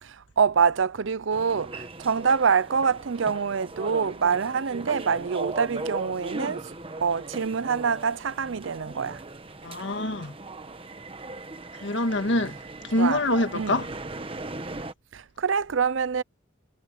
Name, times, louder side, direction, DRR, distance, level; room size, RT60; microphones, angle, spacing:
voice 1, 0.0-6.7 7.0-9.2 13.0-13.2 13.5-13.8 15.1-16.2, right 6 dB, 70° right, 0.6 m, -25 dB
sound 1, 1.3-14.9, right 2 dB, 25° right, 1.2 m, -39 dB
voice 2, 9.6-10.4 11.8-12.6 12.8-13.9, left 1 dB, 65° left, 1.7 m, -25 dB
head